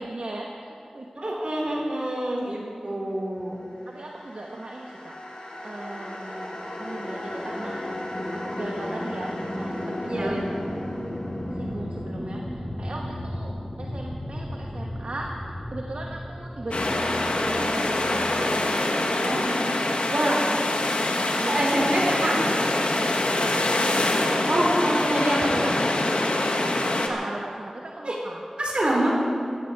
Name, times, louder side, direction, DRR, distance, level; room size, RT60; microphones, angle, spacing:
voice 1, 0.0-1.1 1.7-1.9 3.9-5.2 5.6-7.8 8.3-10.4 11.5-13.5 13.8-19.5 20.0-20.1 21.4-21.7 22.9-23.7 24.1-24.7 26.6-28.4 28.8-29.0, right 2 dB, 80° right, -1 dB, 1.2 m, -37 dB
voice 2, 1.2-3.6 10.1-10.5 19.2-19.6 20.1-20.5 21.4-22.4 24.5-25.7 28.0-28.2 28.6-29.1, right 1 dB, 60° right, -3 dB, 4.5 m, -26 dB
sound 1, 4.1-19.3, left 1 dB, 70° left, 4.0 m, -34 dB
sound 2, 16.7-27.1, left 2 dB, 90° left, 1.5 m, -24 dB
17.0 x 15.5 x 4.8 m, 2.4 s
wide cardioid pair, 50°, 2 cm